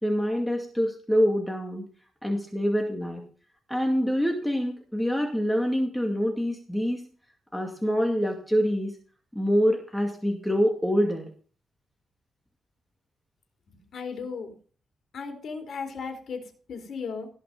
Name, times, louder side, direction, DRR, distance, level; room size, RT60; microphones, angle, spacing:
voice 1, 0.0-1.8 2.2-3.2 3.7-7.0 7.5-8.9 9.3-11.2, equal, 5° left, 2 dB, 2.2 m, -25 dB
voice 2, 13.7-14.5 15.1-17.3, left 5 dB, 60° left, 5 dB, 4.1 m, -36 dB
17.5 x 6.0 x 5.4 m, 0.41 s
cardioid pair, 115°, 0 cm